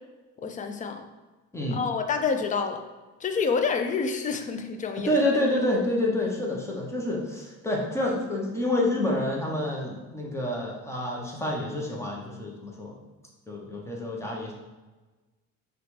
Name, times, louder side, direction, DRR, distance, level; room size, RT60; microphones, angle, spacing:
voice 1, 0.4-1.1 1.7-2.8 3.2-5.2, left 5 dB, 25° left, 6 dB, 0.3 m, -28 dB
voice 2, 5.0-13.0 13.5-14.5, left 1 dB, 10° left, -3 dB, 0.8 m, -28 dB
5.6 x 2.3 x 3.2 m, 1.2 s
cardioid pair, 130°, 31 cm